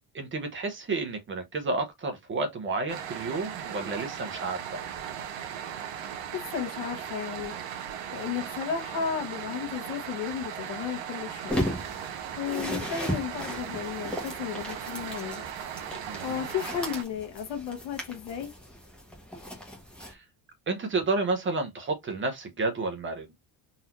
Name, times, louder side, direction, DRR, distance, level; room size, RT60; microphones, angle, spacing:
voice 1, 0.1-4.9 16.0-16.4 20.0-20.2 20.7-23.3, right 3 dB, 25° right, 0.8 m, -31 dB
sound 1, 2.9-17.0, right 9 dB, 60° right, 1.0 m, -38 dB
voice 2, 6.3-7.6 8.1-11.7 12.4-15.4 16.2-18.5, left 8 dB, 60° left, 1.2 m, -34 dB
sound 2, 11.5-20.1, left 1 dB, ahead, 1.0 m, -36 dB
4.0 x 2.6 x 2.9 m
cardioid pair, 175°, 49 cm